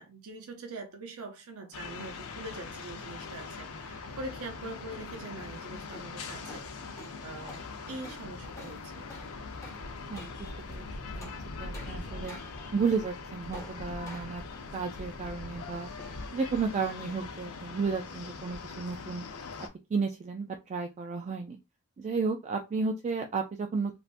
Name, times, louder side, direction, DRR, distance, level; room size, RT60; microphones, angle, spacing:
voice 1, 0.0-9.1, right 2 dB, 85° right, 0.6 m, -43 dB
sound 1, 1.7-19.7, left 4 dB, 90° left, 0.7 m, -42 dB
sound 2, 5.5-19.7, left 1 dB, 15° left, 1.0 m, -53 dB
voice 2, 10.1-10.9 11.2-11.3 11.6-12.4 12.7-14.4 14.7-15.9 16.3-19.2 19.9-21.6 22.0-24.0, right 4 dB, 30° right, 0.3 m, -32 dB
3.3 x 2.6 x 2.5 m
head